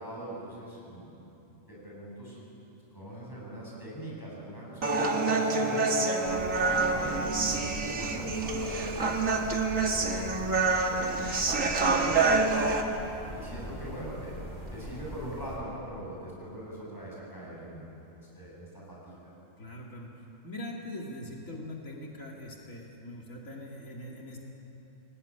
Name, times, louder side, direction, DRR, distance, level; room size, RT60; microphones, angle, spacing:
voice 1, 0.0-2.5 2.9-5.8 6.2-12.8 13.3-14.4 14.7-19.2, right 1 dB, 15° left, -5 dB, 7.6 m, -42 dB
Human voice, 4.8-12.8, right 3 dB, 75° right, 2.2 m, -27 dB
sound 1, 6.2-15.6, equal, 50° right, 6.6 m, -42 dB
voice 2, 19.6-20.1 20.4-24.4, left 1 dB, 85° left, -2 dB, 2.8 m, -42 dB
24.0 x 17.5 x 10.0 m, 3.0 s
omnidirectional pair, 1.4 m